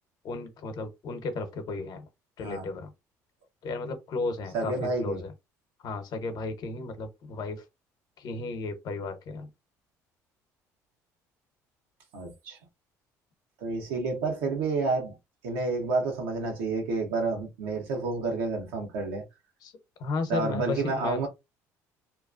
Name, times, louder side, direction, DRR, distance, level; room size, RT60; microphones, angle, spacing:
voice 1, 0.2-2.1 2.4-2.9 3.6-5.3 5.8-7.6 8.2-9.5 14.4-14.5 19.6-19.7 20.0-21.3, left 3 dB, 60° left, 0.9 m, -34 dB
voice 2, 4.5-5.2 12.1-12.6 13.6-15.2 15.4-19.2 20.3-21.3, right 3 dB, 80° right, 1.1 m, -29 dB
2.9 x 2.2 x 2.5 m
hypercardioid pair, 65°, 8 cm